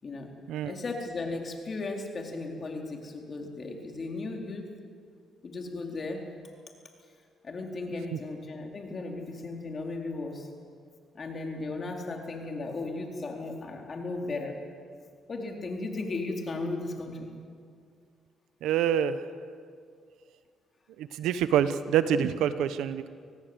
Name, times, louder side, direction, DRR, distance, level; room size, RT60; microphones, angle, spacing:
voice 1, 0.7-4.7 5.4-6.2 7.4-10.5 11.1-14.6 15.3-17.3, left 3 dB, 40° left, 2 dB, 4.2 m, -36 dB
voice 2, 18.6-19.2 21.0-23.1, right 9 dB, 90° right, 12 dB, 1.0 m, -26 dB
25.5 x 18.0 x 8.1 m, 2.1 s
cardioid pair, 90°, 0 cm